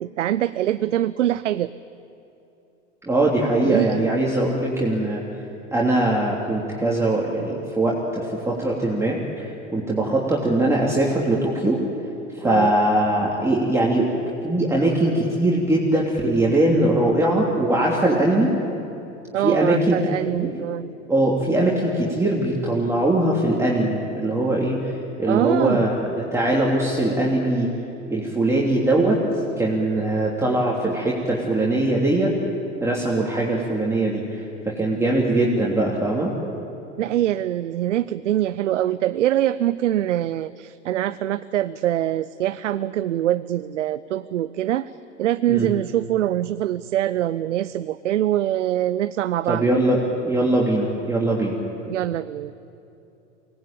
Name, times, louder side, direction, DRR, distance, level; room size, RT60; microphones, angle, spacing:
voice 1, 0.0-1.7 3.6-4.1 12.4-12.8 19.3-20.9 25.2-25.9 37.0-44.9 45.2-49.7 51.8-52.5, right 12 dB, 80° right, 15 dB, 0.7 m, -24 dB
voice 2, 3.0-5.2 5.7-11.8 12.3-14.1 14.4-18.5 19.4-20.0 20.3-20.5 21.1-25.9 26.3-27.7 28.1-29.2 29.6-32.3 32.8-36.3 45.5-45.7 49.5-51.6, right 1 dB, 5° right, -4 dB, 3.2 m, -21 dB
24.0 x 19.0 x 9.0 m, 2.8 s
hypercardioid pair, 95°, 36 cm